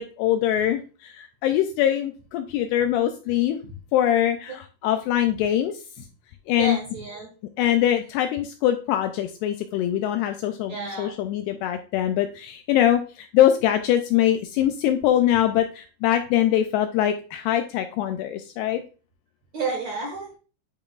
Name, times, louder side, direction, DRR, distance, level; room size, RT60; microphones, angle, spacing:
voice 1, 0.0-3.6 3.9-6.1 6.5-6.8 7.6-18.8, left 11 dB, 85° left, 7 dB, 2.4 m, -23 dB
voice 2, 6.6-7.3 10.7-11.1 19.5-20.4, right 2 dB, 60° right, -1 dB, 1.9 m, -30 dB
10.0 x 5.2 x 2.4 m, 0.36 s
omnidirectional pair, 5.1 m